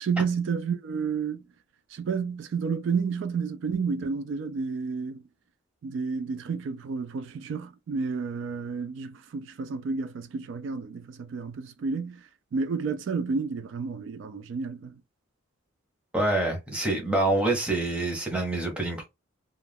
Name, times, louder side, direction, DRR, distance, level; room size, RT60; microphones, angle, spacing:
voice 1, 0.0-1.4 1.9-5.2 5.8-12.2 12.5-14.9, right 5 dB, 70° right, 0.3 m, -31 dB
voice 2, 16.1-19.0, right 2 dB, 5° right, 0.8 m, -26 dB
2.4 x 2.1 x 3.3 m
head